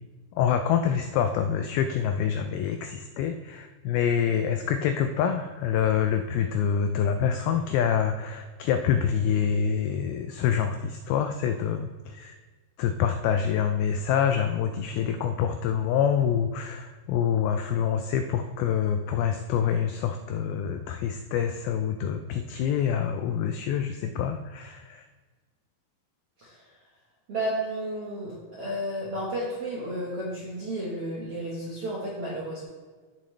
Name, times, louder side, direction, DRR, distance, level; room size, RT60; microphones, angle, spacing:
voice 1, 0.4-12.4 12.8-25.1, left 8 dB, 90° left, 7 dB, 2.1 m, -26 dB
voice 2, 27.3-32.6, right 1 dB, 65° right, -6 dB, 1.4 m, -32 dB
14.5 x 6.4 x 3.3 m, 1.4 s
omnidirectional pair, 4.9 m